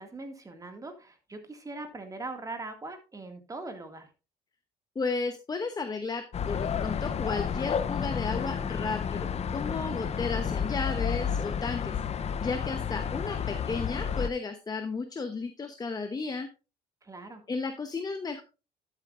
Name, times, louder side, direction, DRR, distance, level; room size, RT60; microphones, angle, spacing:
voice 1, 0.0-4.1 17.0-17.4, right 2 dB, 20° right, 6 dB, 2.1 m, -41 dB
voice 2, 4.9-12.0 12.4-16.5 17.5-18.4, left 4 dB, 25° left, 8 dB, 0.9 m, -34 dB
sound 1, 6.3-14.3, left 7 dB, 40° left, 0.7 m, -31 dB
12.5 x 8.3 x 2.5 m, 0.30 s
cardioid pair, 110°, 17 cm